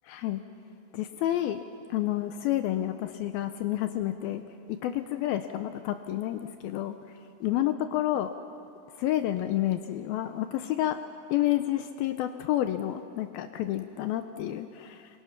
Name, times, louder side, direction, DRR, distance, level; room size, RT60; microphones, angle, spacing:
voice 1, 0.1-0.4 0.9-1.6 1.9-4.4 4.7-7.0 7.4-8.3 9.0-11.0 11.3-15.1, left 13 dB, 80° left, 9 dB, 2.3 m, -29 dB
28.0 x 24.5 x 5.9 m, 2.7 s
omnidirectional pair, 4.8 m